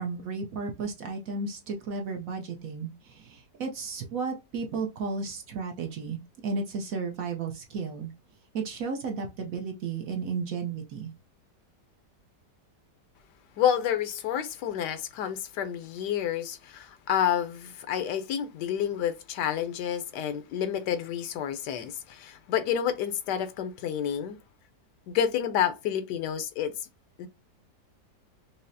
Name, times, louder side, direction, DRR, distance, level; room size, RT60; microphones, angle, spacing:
voice 1, 0.0-8.1 8.5-11.1, right 4 dB, 65° right, 0.9 m, -33 dB
voice 2, 13.6-24.4 25.1-26.7 27.2-27.3, left 9 dB, 80° left, 1.2 m, -29 dB
5.5 x 2.0 x 2.5 m
omnidirectional pair, 1.9 m